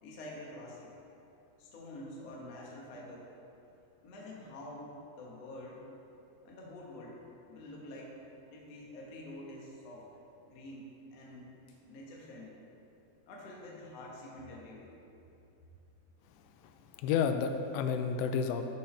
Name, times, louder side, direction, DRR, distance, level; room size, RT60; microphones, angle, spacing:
voice 1, 0.0-0.9 1.6-3.3 4.0-5.8 6.4-7.2 7.5-8.2 8.5-10.0 10.5-11.5 11.9-12.6 13.3-14.9, left 1 dB, 70° left, -3 dB, 1.5 m, -47 dB
voice 2, 16.3-18.7, left 6 dB, 85° left, 7 dB, 2.8 m, -32 dB
13.5 x 5.6 x 3.3 m, 2.8 s
omnidirectional pair, 4.9 m